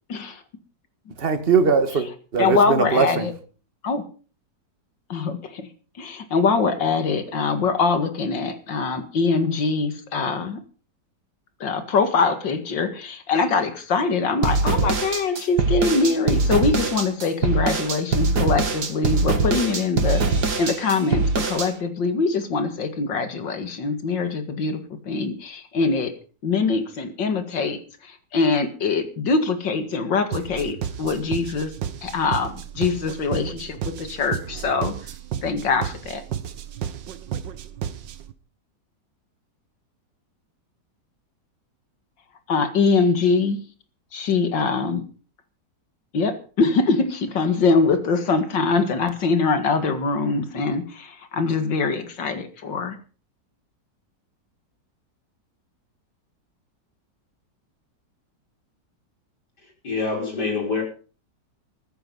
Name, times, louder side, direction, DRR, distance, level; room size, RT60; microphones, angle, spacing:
voice 1, 0.1-0.4 2.4-3.3 3.8-4.0 5.1-5.7 6.0-10.6 11.6-26.1 26.4-31.7 32.0-34.9 35.4-36.2 42.5-43.6 44.1-45.0 46.1-53.0, left 4 dB, 85° left, 2.6 m, -23 dB
voice 2, 1.2-3.3, right 5 dB, 35° right, 1.9 m, -20 dB
sound 1, 14.4-21.7, right 4 dB, 65° right, 2.5 m, -22 dB
sound 2, 30.3-38.3, right 9 dB, 90° right, 1.8 m, -33 dB
voice 3, 59.8-60.8, left 4 dB, 65° left, 5.9 m, -25 dB
15.0 x 14.0 x 5.5 m
omnidirectional pair, 1.9 m